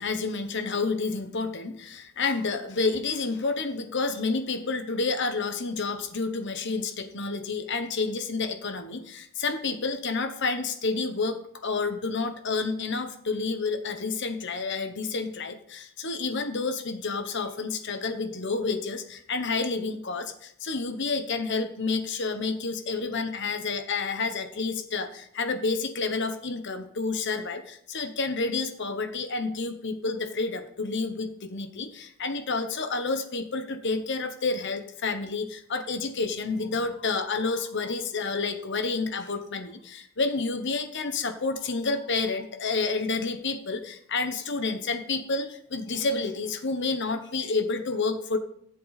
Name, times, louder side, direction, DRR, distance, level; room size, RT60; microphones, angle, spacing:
voice 1, 0.0-48.4, left 4 dB, 55° left, 8 dB, 1.0 m, -29 dB
15.0 x 7.7 x 4.1 m, 0.69 s
head